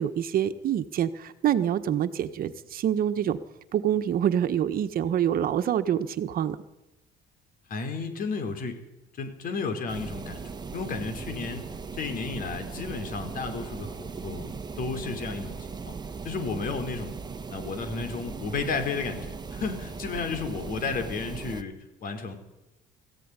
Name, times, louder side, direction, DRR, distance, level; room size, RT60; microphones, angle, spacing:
voice 1, 0.0-3.4 3.7-6.6, right 10 dB, 60° right, 10 dB, 1.4 m, -26 dB
voice 2, 7.7-8.8 9.2-11.6 11.9-15.9 16.2-17.2 17.5-21.7 22.0-22.4, left 4 dB, 55° left, 6 dB, 4.4 m, -33 dB
sound 1, 9.9-21.6, right 5 dB, 25° right, 1.6 m, -38 dB
21.0 x 15.0 x 9.8 m, 1.0 s
cardioid pair, 110°, 17 cm